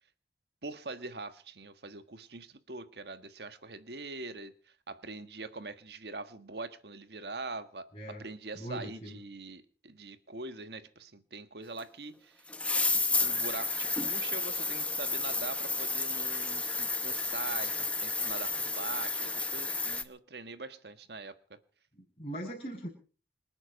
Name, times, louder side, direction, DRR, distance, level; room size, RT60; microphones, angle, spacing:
voice 1, 0.6-4.5 4.9-12.5 12.9-21.6, right 3 dB, 70° right, 1.5 m, -43 dB
voice 2, 7.9-8.2 8.5-9.2 21.9-22.9, right 1 dB, 35° left, 6.1 m, -40 dB
sound 1, 11.8-11.9 12.5-20.0, left 3 dB, 5° left, 0.8 m, -31 dB
27.0 x 9.8 x 5.3 m
head